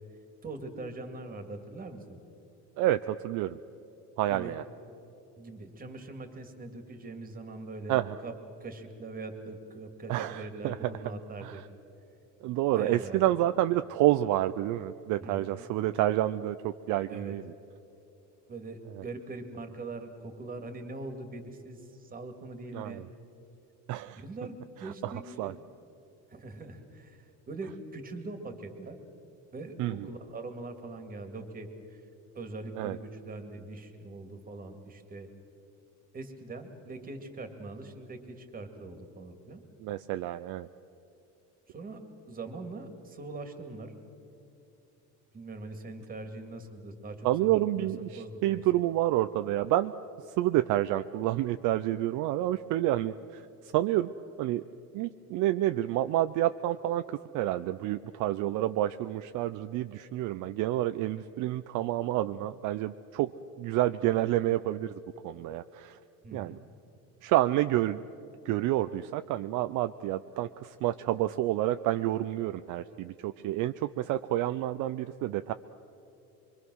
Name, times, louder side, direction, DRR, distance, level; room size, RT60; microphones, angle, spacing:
voice 1, 0.4-2.2 4.3-4.5 5.4-11.6 12.7-13.2 15.2-15.7 17.1-17.3 18.5-23.0 24.1-25.6 26.3-29.0 29.5-32.0 32.3-35.3 36.1-39.6 41.7-43.9 45.3-48.6 66.2-66.6, right 2 dB, 25° right, 6 dB, 2.3 m, -42 dB
voice 2, 2.8-3.6 4.2-4.6 7.9-8.2 10.1-10.8 11.4-11.5 12.4-17.4 22.7-23.0 23.9-24.2 25.0-25.1 25.4-25.5 29.8-30.0 32.8-33.0 39.8-40.7 47.2-49.9 50.4-53.4 53.7-54.1 54.4-54.6 54.9-57.0 57.3-63.3 63.6-66.0 66.3-66.6 67.2-68.0 68.5-75.5, right 14 dB, 60° right, 10 dB, 0.6 m, -29 dB
25.0 x 23.5 x 6.3 m, 2.8 s
cardioid pair, 145°, 35 cm